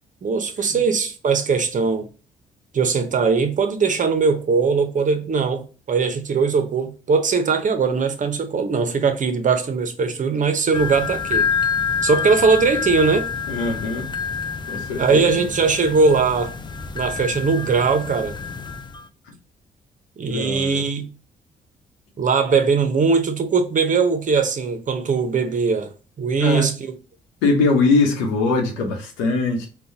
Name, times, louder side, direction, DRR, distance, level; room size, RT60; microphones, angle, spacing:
voice 1, 0.2-2.1 2.7-11.5 12.0-13.3 15.0-16.6 16.9-18.4 20.2-21.1 22.2-26.9, right 5 dB, 45° right, 0.7 m, -20 dB
sound 1, 10.7-19.0, left 6 dB, 25° left, 0.5 m, -27 dB
voice 2, 13.5-14.1 14.7-15.4 19.2-19.4 20.3-20.8 26.4-26.7 27.4-29.7, left 3 dB, 85° left, 0.8 m, -22 dB
3.8 x 2.2 x 2.7 m
hypercardioid pair, 50°, 19 cm